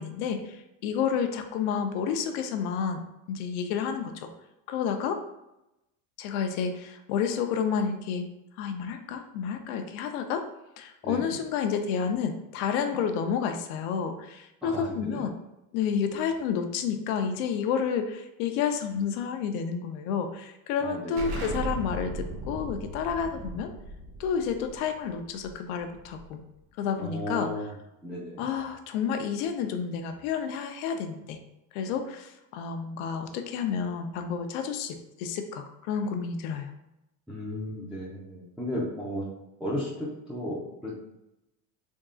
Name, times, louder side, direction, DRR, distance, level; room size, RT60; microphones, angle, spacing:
voice 1, 0.0-3.0 3.3-4.3 4.7-5.2 6.2-8.3 8.6-10.4 10.8-15.3 15.7-23.7 24.2-26.4 26.8-27.7 28.4-31.4 31.7-36.7, left 7 dB, 80° left, 6 dB, 0.6 m, -30 dB
voice 2, 14.6-15.2 27.0-27.6 28.0-28.4 37.3-39.2 39.6-41.0, left 1 dB, ahead, -8 dB, 0.4 m, -34 dB
Explosion, 21.2-26.6, right 2 dB, 60° right, 1.0 m, -38 dB
3.6 x 2.3 x 3.7 m, 0.89 s
cardioid pair, 145°, 42 cm